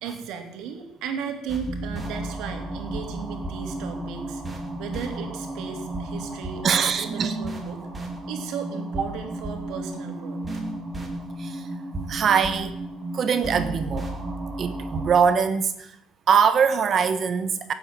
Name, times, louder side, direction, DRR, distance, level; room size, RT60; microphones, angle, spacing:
voice 1, 0.0-10.4, right 7 dB, 65° right, 5 dB, 3.1 m, -35 dB
sound 1, 1.5-15.2, right 1 dB, 15° right, 2.6 m, -33 dB
voice 2, 6.6-7.3 11.4-11.7 12.1-12.8 13.1-14.1 14.6-16.0 16.3-17.7, right 6 dB, 30° right, 11 dB, 1.0 m, -22 dB
17.0 x 8.5 x 9.0 m, 0.81 s
cardioid pair, 165°, 0 cm